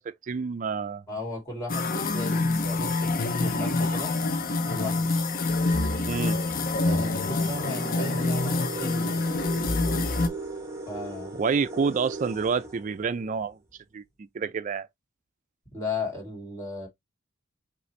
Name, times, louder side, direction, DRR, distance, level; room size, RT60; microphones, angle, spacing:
voice 1, 0.0-1.0 6.0-6.4 11.4-13.6 13.9-14.9, right 5 dB, 35° right, 0.3 m, -28 dB
voice 2, 1.1-4.1 4.6-5.1 6.8-9.2 10.9-11.4 15.7-16.9, left 2 dB, 15° left, 2.2 m, -35 dB
sound 1, 1.7-10.3, left 3 dB, 40° left, 0.6 m, -26 dB
sound 2, 4.0-13.5, right 2 dB, 15° right, 1.0 m, -39 dB
5.3 x 2.5 x 3.1 m
head